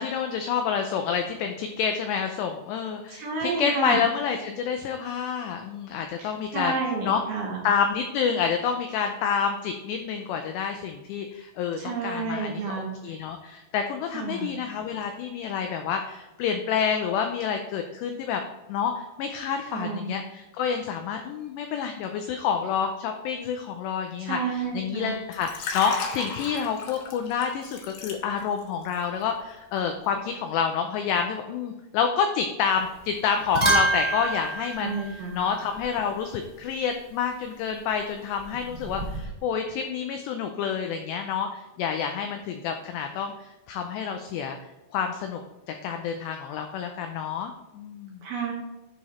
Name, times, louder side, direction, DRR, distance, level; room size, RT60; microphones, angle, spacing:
voice 1, 0.0-6.7 7.1-7.2 7.6-18.4 18.7-44.6 44.9-45.4 45.7-48.2, left 7 dB, 85° left, 5 dB, 2.4 m, -28 dB
voice 2, 3.1-4.0 6.2-6.3 6.5-7.6 11.8-12.9 14.1-14.5 19.7-20.2 24.2-25.2 34.8-35.4 48.2-48.5, right 4 dB, 70° right, -2 dB, 2.5 m, -30 dB
Liquid, 25.3-28.6 28.9-29.2, left 4 dB, 70° left, 3.1 m, -34 dB
sound 1, 32.8-33.1 33.4-35.9 38.4-39.3, right 2 dB, 25° right, 1.0 m, -27 dB
10.0 x 4.8 x 4.2 m, 1.0 s
omnidirectional pair, 5.6 m